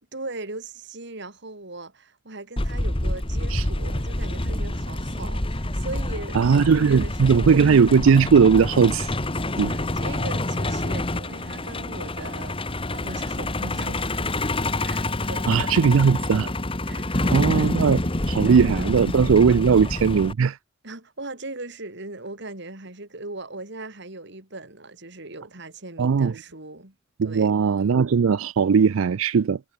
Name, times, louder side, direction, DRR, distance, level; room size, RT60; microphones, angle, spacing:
voice 1, 0.1-7.6 9.7-14.2 14.8-15.5 16.8-17.7 18.2-18.9 20.8-26.9 27.2-27.5, right 2 dB, 60° right, 4.2 m, -39 dB
Truck, 2.6-20.3, left 1 dB, 25° left, 2.0 m, -27 dB
voice 2, 6.3-9.1 9.6-9.7 15.5-16.5 17.3-18.0 18.3-20.6 26.0-26.3 27.2-29.6, right 6 dB, 90° right, 0.4 m, -18 dB
head